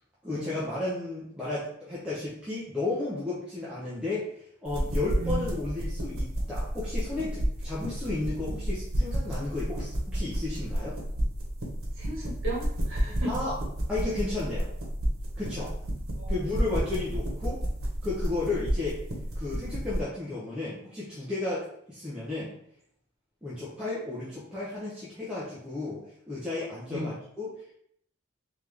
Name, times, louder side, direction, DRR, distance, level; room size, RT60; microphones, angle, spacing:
voice 1, 0.2-4.2 4.6-11.0 13.2-13.5 13.9-14.7 15.4-15.7 16.3-17.6 18.0-19.0 19.3-22.5 23.4-27.5, left 2 dB, 5° right, -9 dB, 0.8 m, -33 dB
sound 1, 4.6-20.0, equal, 80° right, 1.1 m, -31 dB
voice 2, 5.2-5.5 12.0-13.3 16.2-16.4 16.7-16.8 26.9-27.1, right 1 dB, 65° right, -2 dB, 1.4 m, -35 dB
3.6 x 3.5 x 3.4 m, 0.68 s
head